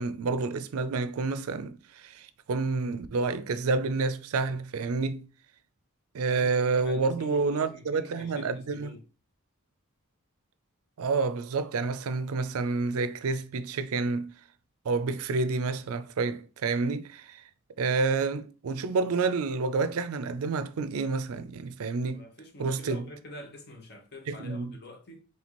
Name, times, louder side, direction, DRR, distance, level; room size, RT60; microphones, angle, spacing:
voice 1, 0.0-5.2 6.1-8.9 11.0-14.3 14.9-17.4 17.8-22.2 22.6-23.0 24.3-24.7, right 4 dB, 85° right, 0.4 m, -29 dB
voice 2, 6.3-9.0 21.9-25.2, left 1 dB, 50° left, 0.9 m, -47 dB
4.2 x 3.2 x 2.9 m
head